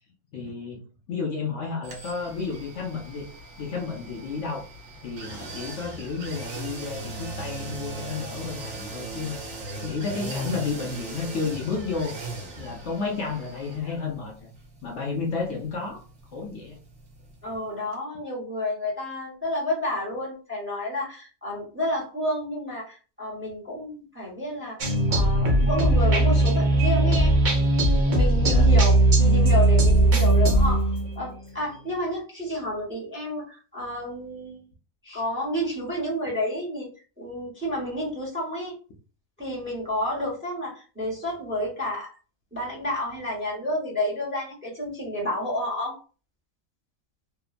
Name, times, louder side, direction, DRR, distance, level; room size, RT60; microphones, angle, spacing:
voice 1, 0.3-3.3 3.6-4.7 5.0-9.5 9.8-12.1 12.6-14.5 14.8-16.0 16.3-16.8 28.4-28.7, left 4 dB, 65° left, 0 dB, 0.8 m, -32 dB
sound 1, 1.8-17.6 17.9-18.0, right 2 dB, 75° right, 1.2 m, -39 dB
voice 2, 17.4-27.3 28.1-34.6 35.0-36.9 37.2-38.8 39.4-42.1 42.5-46.0, left 1 dB, 10° right, -3 dB, 0.8 m, -30 dB
sound 2, 24.8-31.3, right 1 dB, 45° right, 0.7 m, -19 dB
2.8 x 2.0 x 2.4 m, 0.36 s
omnidirectional pair, 1.4 m